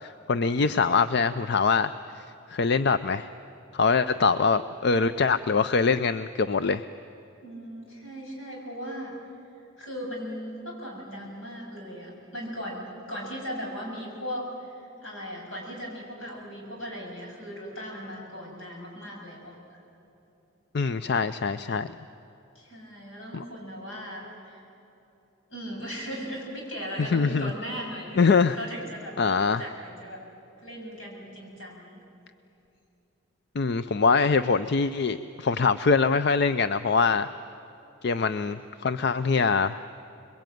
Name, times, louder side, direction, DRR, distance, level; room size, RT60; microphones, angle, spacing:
voice 1, 0.0-3.3 3.7-6.9 20.7-21.9 23.3-23.4 27.1-27.5 28.2-28.6 29.2-29.6 33.6-37.3 38.0-39.8, left 4 dB, 55° left, 12 dB, 0.5 m, -23 dB
voice 2, 7.4-9.2 9.8-19.8 22.5-24.6 25.5-30.2 30.6-32.0, equal, 80° left, -1 dB, 7.7 m, -38 dB
26.5 x 22.5 x 9.3 m, 2.9 s
head